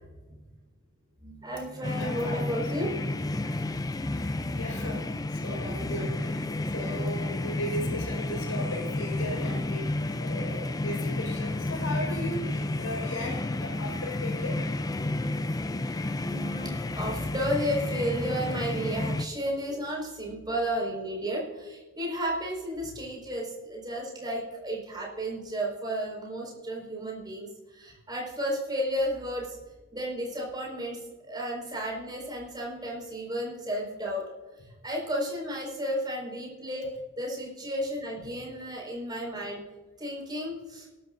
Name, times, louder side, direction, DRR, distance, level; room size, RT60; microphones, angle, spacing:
voice 1, 1.2-3.0 4.1-4.3 5.5-6.2 16.2-29.6 29.9-34.2 34.8-39.6 40.0-40.9, equal, 20° right, -2 dB, 4.8 m, -33 dB
sound 1, 1.8-19.3, left 2 dB, 15° left, 0.4 m, -31 dB
voice 2, 2.0-2.5 4.1-9.9 10.2-14.6 19.7-19.8, left 1 dB, 70° left, 0 dB, 4.7 m, -37 dB
19.0 x 12.0 x 2.6 m, 1.2 s
head